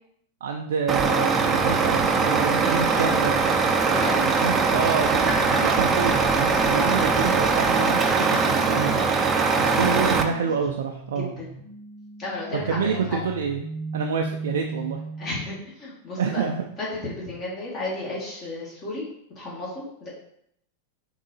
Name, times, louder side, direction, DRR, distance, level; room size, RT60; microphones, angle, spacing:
voice 1, 0.4-3.3 4.2-9.1 9.6-11.3 12.7-13.6 13.9-15.0 16.2-16.7, right 6 dB, 80° right, 2 dB, 0.4 m, -27 dB
Truck, 0.9-10.2, right 4 dB, 20° right, 0.4 m, -21 dB
voice 2, 3.9-4.2 6.7-7.4 9.6-9.9 11.2-11.5 12.2-13.2 15.2-16.4 16.8-19.0 19.3-20.1, left 2 dB, 35° left, -6 dB, 1.2 m, -33 dB
sound 1, 9.6-15.5, right 3 dB, 80° left, 1.5 m, -37 dB
3.8 x 2.7 x 4.0 m, 0.73 s
hypercardioid pair, 115°, 0 cm